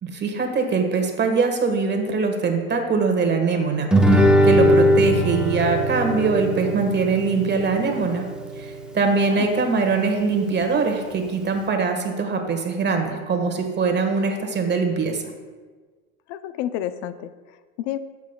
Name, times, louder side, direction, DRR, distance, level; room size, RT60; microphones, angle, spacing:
voice 1, 0.0-8.2 8.6-15.2, right 4 dB, 25° right, 4 dB, 1.4 m, -22 dB
Guitar, 3.9-9.0, equal, ahead, 0.8 m, -20 dB
voice 2, 16.3-18.0, left 12 dB, 65° left, 13 dB, 0.5 m, -30 dB
12.5 x 7.2 x 2.2 m, 1.4 s
hypercardioid pair, 100°, 41 cm